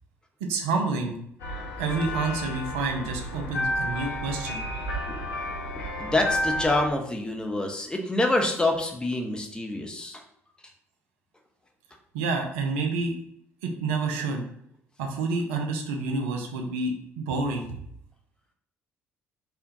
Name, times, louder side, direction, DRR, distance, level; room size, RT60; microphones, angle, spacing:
voice 1, 0.4-1.1 1.8-4.6 12.1-13.1 13.6-14.4 15.0-17.8, right 3 dB, 65° right, 3 dB, 0.4 m, -28 dB
sound 1, 1.4-6.9, left 1 dB, 70° left, 0.5 m, -31 dB
voice 2, 5.7-10.2, left 2 dB, 10° left, 2 dB, 0.5 m, -27 dB
3.5 x 2.2 x 2.6 m, 0.71 s
figure-of-eight pair, 50°, 7 cm